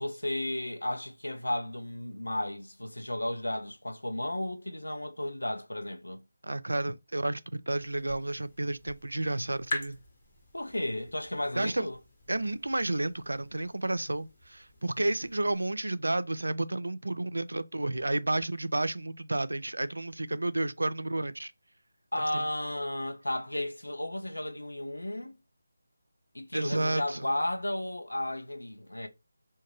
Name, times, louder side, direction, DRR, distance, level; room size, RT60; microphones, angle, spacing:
voice 1, 0.0-6.2 10.5-12.0 22.1-25.4 26.3-29.1, left 1 dB, 85° left, 0.6 m, -33 dB
voice 2, 6.4-10.0 11.6-11.9 12.3-21.5 22.3-22.5 26.5-27.3, right 2 dB, 80° right, 0.3 m, -31 dB
sound 1, 7.8-15.7, left 2 dB, 40° left, 1.2 m, -45 dB
2.5 x 2.1 x 3.2 m
figure-of-eight pair, 160°, 0 cm